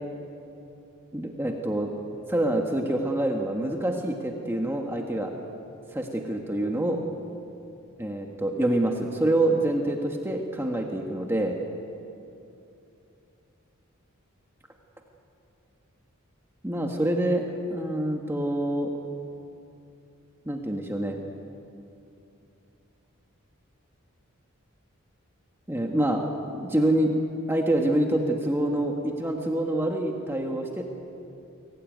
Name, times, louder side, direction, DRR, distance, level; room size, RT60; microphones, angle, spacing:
voice 1, 1.1-1.9 2.3-5.3 5.9-7.0 8.0-11.6 16.6-18.9 20.4-21.2 25.7-26.2 26.5-27.1 27.5-30.8, right 1 dB, 10° right, 1 dB, 1.5 m, -26 dB
23.5 x 18.0 x 9.4 m, 2.8 s
head